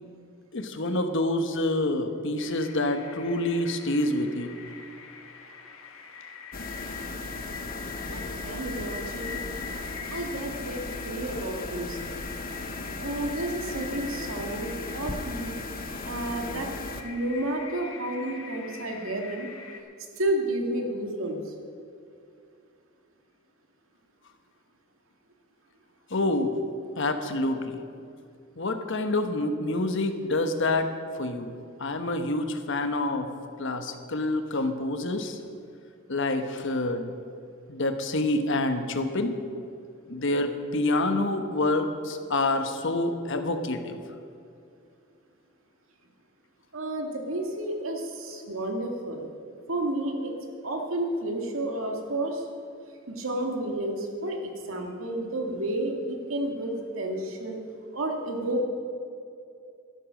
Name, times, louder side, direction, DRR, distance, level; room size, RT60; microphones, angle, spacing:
voice 1, 0.5-4.5 26.1-26.5 27.0-27.8 28.6-30.9 31.2-31.5 31.8-33.3 33.6-35.4 36.1-37.1 37.7-39.3 40.1-44.0, left 2 dB, 65° left, 7 dB, 1.2 m, -27 dB
sound 1, 2.4-19.8, left 5 dB, 85° left, 1.7 m, -44 dB
sound 2, 6.5-17.0, left 3 dB, 45° left, 1.0 m, -36 dB
voice 2, 8.1-9.4 10.1-12.1 13.0-15.5 15.9-16.7 17.0-19.5 20.2-21.5 46.7-49.3 49.7-50.3 50.6-52.4 53.1-57.6 57.9-58.7, right 1 dB, 85° right, 2 dB, 2.0 m, -31 dB
12.0 x 11.5 x 6.3 m, 2.4 s
head